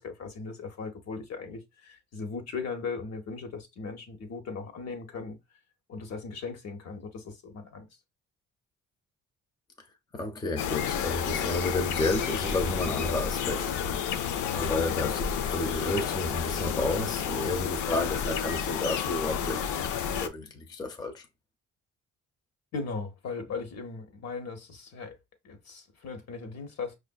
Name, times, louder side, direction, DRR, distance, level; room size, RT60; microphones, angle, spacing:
voice 1, 0.0-5.4 5.9-7.9 22.7-25.1 25.4-27.0, left 4 dB, 60° left, 1.0 m, -38 dB
voice 2, 10.1-13.7 14.5-21.3, left 2 dB, 15° left, 0.5 m, -31 dB
sound 1, 10.6-20.3, left 8 dB, 85° left, 0.5 m, -30 dB
5.1 x 2.5 x 2.2 m
cardioid pair, 90°, 30 cm